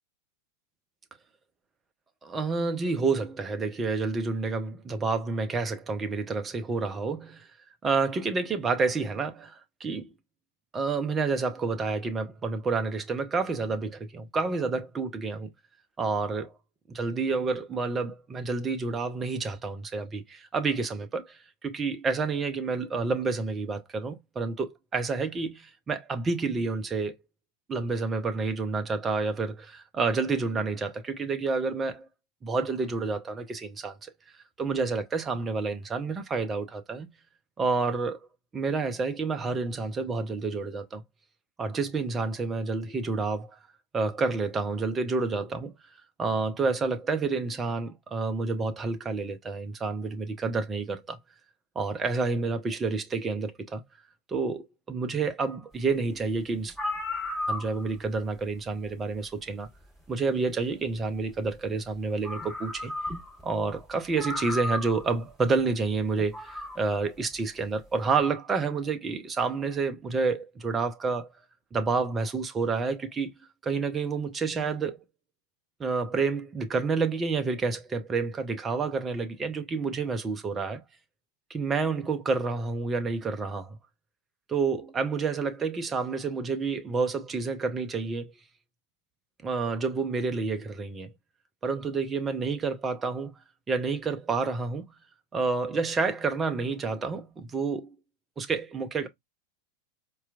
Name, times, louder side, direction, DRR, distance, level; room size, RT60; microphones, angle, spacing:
voice 1, 2.2-7.5 7.8-10.1 10.7-15.5 16.0-16.5 16.9-27.1 27.7-32.1 32.4-34.0 34.6-37.1 37.6-38.2 38.5-41.0 41.6-43.5 43.9-45.7 46.2-51.2 51.8-53.8 54.3-56.7 57.5-59.7 60.1-62.9 63.4-71.3 71.7-73.3 73.6-75.0 75.8-80.8 81.5-83.8 84.5-88.3 89.4-91.1 91.6-93.3 93.7-94.8 95.3-97.9 98.4-99.1, right 4 dB, 20° right, 0.6 m, -29 dB
sound 1, 56.3-56.4 56.7-58.1 59.5-59.6 61.8-61.9 62.2-63.4 63.7-63.8 64.2-65.1 66.2-66.8, left 1 dB, 5° left, 2.8 m, -33 dB
4.3 x 2.3 x 2.4 m
figure-of-eight pair, 90°, 0 cm